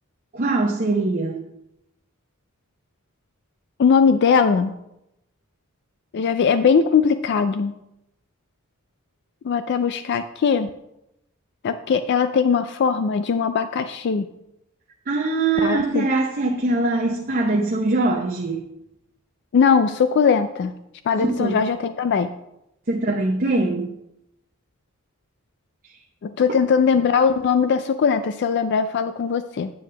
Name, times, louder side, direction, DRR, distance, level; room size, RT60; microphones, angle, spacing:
voice 1, 0.3-1.5 15.1-18.6 21.2-21.6 22.9-23.9, right 2 dB, 45° right, 0 dB, 0.8 m, -22 dB
voice 2, 3.8-4.7 6.1-7.7 9.4-10.7 11.6-14.3 15.6-16.1 19.5-20.7 21.1-22.3 26.2-29.7, left 6 dB, 55° left, 11 dB, 0.3 m, -20 dB
8.5 x 8.2 x 3.3 m, 0.85 s
head